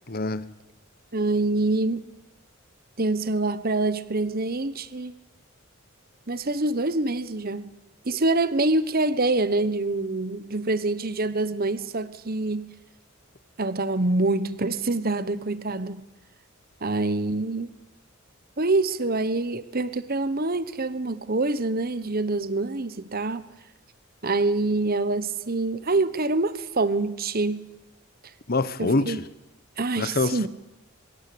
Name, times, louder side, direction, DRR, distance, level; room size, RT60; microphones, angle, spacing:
voice 1, 0.1-0.4 28.5-29.2 30.0-30.5, left 2 dB, 45° left, 1.2 m, -25 dB
voice 2, 1.1-2.1 3.0-5.1 6.3-7.7 8.0-12.7 13.6-16.0 16.8-17.7 18.6-23.5 24.2-27.6 28.8-29.2 29.8-30.5, right 2 dB, 45° right, 1.1 m, -25 dB
24.0 x 22.0 x 8.7 m
head